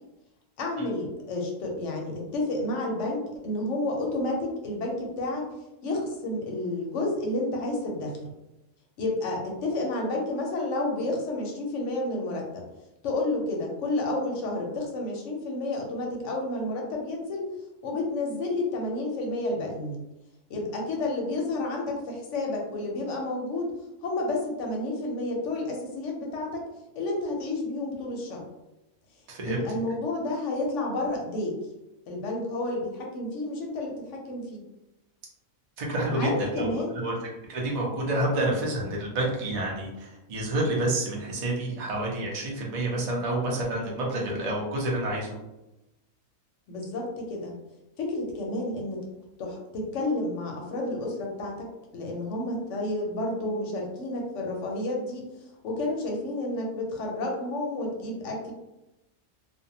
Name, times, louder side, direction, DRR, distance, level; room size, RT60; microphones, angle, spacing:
voice 1, 0.6-5.5 5.8-8.3 9.0-12.6 13.0-17.5 17.8-20.0 20.5-23.7 24.0-26.6 26.9-28.4 29.4-31.6 32.1-34.6 36.1-37.0 46.7-47.5 48.0-49.1 49.4-55.2 55.6-58.5, left 2 dB, 65° left, 0 dB, 0.9 m, -30 dB
voice 2, 29.3-29.6 35.8-37.2 37.5-45.3, right 1 dB, 45° right, -2 dB, 0.4 m, -29 dB
2.5 x 2.1 x 2.7 m, 0.95 s
omnidirectional pair, 1.5 m